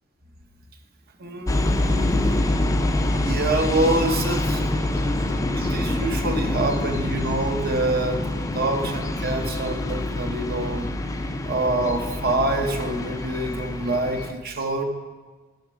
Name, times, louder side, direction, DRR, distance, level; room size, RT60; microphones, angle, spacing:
voice 1, 1.2-2.4 3.1-4.7 5.2-8.3 8.5-10.9 11.4-14.8, right 2 dB, 45° right, 5 dB, 0.8 m, -26 dB
sound 1, 1.5-14.3, left 1 dB, 15° left, 0.4 m, -26 dB
7.9 x 6.8 x 5.0 m, 1.4 s
head